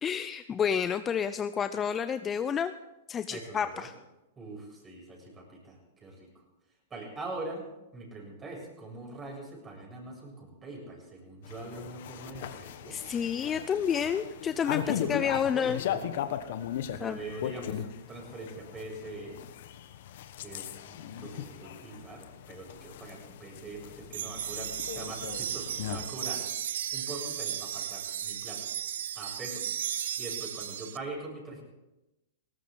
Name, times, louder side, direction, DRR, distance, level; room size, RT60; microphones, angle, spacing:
voice 1, 0.0-2.7 3.1-3.9 12.9-15.8 17.0-17.2, left 7 dB, 20° left, 12 dB, 0.6 m, -30 dB
voice 2, 3.3-3.9 4.4-6.3 6.9-7.7 7.9-13.0 14.8-16.1 16.9-19.4 20.4-26.4 26.9-28.7 29.1-29.7 30.2-31.6, right 2 dB, 20° right, 0 dB, 7.4 m, -43 dB
sound 1, 11.4-26.1, left 10 dB, 60° left, 1.3 m, -38 dB
sound 2, 24.1-31.0, right 10 dB, 70° right, 0.6 m, -35 dB
19.5 x 18.0 x 3.9 m, 0.98 s
hypercardioid pair, 115°, 0 cm